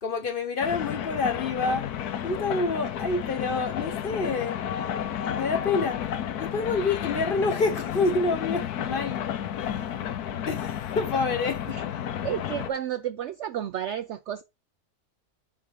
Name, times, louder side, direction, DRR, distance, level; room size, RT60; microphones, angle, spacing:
voice 1, 0.0-1.8 2.2-4.6 5.3-6.0 6.4-9.3 10.5-11.8, left 3 dB, 40° left, 0.9 m, -27 dB
sound 1, 0.6-12.7, left 9 dB, 80° left, 1.3 m, -32 dB
voice 2, 12.2-14.4, right 10 dB, 70° right, 0.7 m, -31 dB
9.4 x 3.7 x 4.7 m
omnidirectional pair, 1.6 m